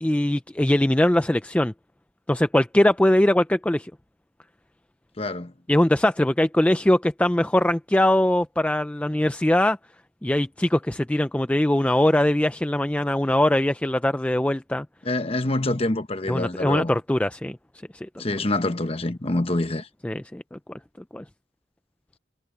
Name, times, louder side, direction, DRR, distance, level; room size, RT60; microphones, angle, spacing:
voice 1, 0.0-1.7 2.3-3.9 5.7-9.8 10.2-14.9 16.3-17.6 18.0-18.1 20.0-20.6 21.1-21.2, left 1 dB, 5° left, 0.3 m, -21 dB
voice 2, 5.2-5.5 15.0-16.9 18.2-19.9, left 2 dB, 30° left, 1.0 m, -26 dB
head